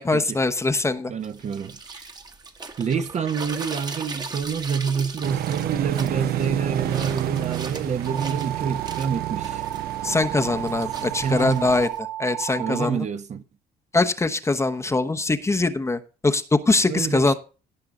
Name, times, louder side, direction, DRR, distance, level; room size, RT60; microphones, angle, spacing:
voice 1, 0.0-1.1 10.0-11.9 12.2-13.1 13.9-17.3, left 3 dB, 15° left, 1.0 m, -22 dB
voice 2, 1.1-2.1 2.8-9.6 11.2-11.7 12.6-13.4 16.9-17.3, right 6 dB, 45° right, 1.1 m, -27 dB
sound 1, 1.2-12.0, right 3 dB, 25° right, 1.4 m, -39 dB
sound 2, 5.2-11.8, right 14 dB, 65° right, 0.7 m, -30 dB
sound 3, 8.1-12.9, right 12 dB, 90° right, 1.9 m, -32 dB
17.0 x 5.7 x 3.8 m
cardioid pair, 110°, 17 cm